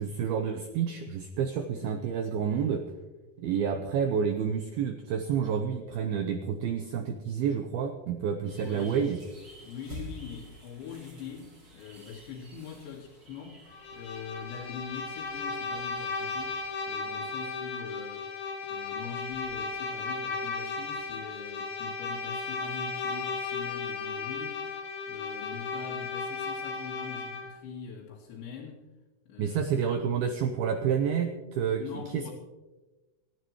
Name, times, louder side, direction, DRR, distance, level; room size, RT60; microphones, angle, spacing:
voice 1, 0.0-2.8 3.4-9.2 29.4-31.8 32.1-32.3, right 7 dB, 85° right, 6 dB, 2.2 m, -29 dB
voice 2, 8.5-9.0 9.6-16.6 16.9-18.3 18.6-24.6 25.1-28.8 29.3-29.7 31.8-32.3, left 7 dB, 70° left, -5 dB, 4.0 m, -43 dB
sound 1, 8.5-16.8, right 1 dB, 25° right, 3.1 m, -50 dB
Bowed string instrument, 13.7-27.6, left 4 dB, 50° left, 2.8 m, -35 dB
28.0 x 11.0 x 3.1 m, 1.1 s
omnidirectional pair, 5.5 m